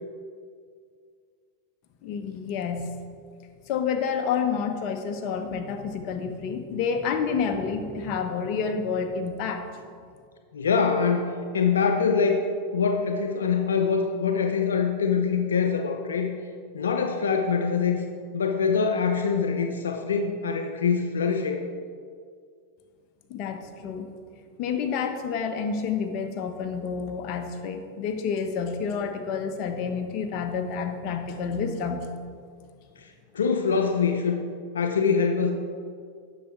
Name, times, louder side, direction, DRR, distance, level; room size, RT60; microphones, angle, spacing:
voice 1, 2.0-2.9 3.7-9.7 23.3-24.1 24.6-32.1, left 6 dB, 50° left, 5 dB, 1.0 m, -29 dB
voice 2, 10.5-12.4 12.7-16.3 16.7-18.0 18.3-21.6 33.0-33.1 33.3-34.4 34.7-35.5, left 5 dB, 90° left, 5 dB, 0.6 m, -24 dB
9.7 x 6.6 x 4.6 m, 2.1 s
hypercardioid pair, 105°, 0 cm